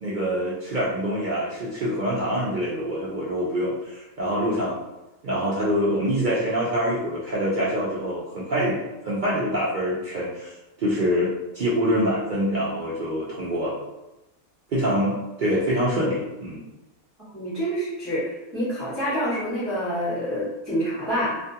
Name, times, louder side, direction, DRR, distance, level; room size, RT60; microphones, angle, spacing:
voice 1, 0.0-4.8 5.2-13.8 14.7-16.6, equal, 75° right, -7 dB, 0.4 m, -25 dB
voice 2, 17.3-21.4, equal, 20° right, -11 dB, 1.0 m, -27 dB
2.4 x 2.3 x 2.7 m, 1.0 s
omnidirectional pair, 1.5 m